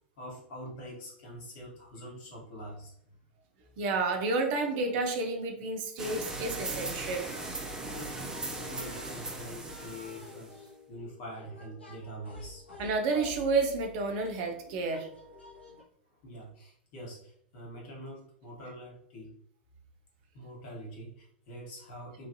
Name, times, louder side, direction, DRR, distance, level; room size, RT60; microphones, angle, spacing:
voice 1, 0.2-2.9 7.9-10.5 10.9-12.6 15.6-15.8 16.1-19.3 20.3-22.3, equal, 50° left, -3 dB, 1.3 m, -45 dB
voice 2, 3.8-7.3 12.8-15.1, right 3 dB, 50° right, 4 dB, 0.7 m, -30 dB
sound 1, 6.0-10.7, right 2 dB, 10° right, 0.6 m, -38 dB
sound 2, 7.1-7.5 7.8-15.8, left 1 dB, 90° left, 0.8 m, -50 dB
3.1 x 2.5 x 2.6 m, 0.68 s
figure-of-eight pair, 95°, 6 cm